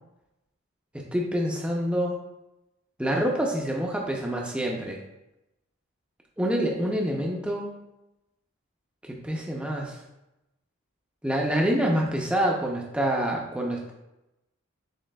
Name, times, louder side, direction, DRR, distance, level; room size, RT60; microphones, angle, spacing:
voice 1, 1.1-2.2 3.0-5.0 6.4-7.7 9.1-10.0 11.2-13.9, equal, 5° right, -1 dB, 0.4 m, -26 dB
7.2 x 3.0 x 2.2 m, 0.91 s
head